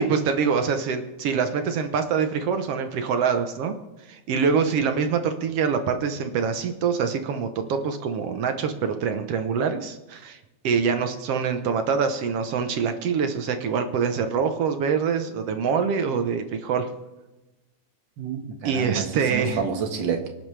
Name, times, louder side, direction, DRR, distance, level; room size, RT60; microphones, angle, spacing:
voice 1, 0.0-3.8 4.1-10.4 10.6-16.9 18.7-19.6, right 6 dB, 65° right, 7 dB, 1.8 m, -25 dB
voice 2, 18.2-20.3, right 6 dB, 45° right, 4 dB, 1.9 m, -29 dB
24.5 x 11.0 x 3.4 m, 1.1 s
omnidirectional pair, 3.4 m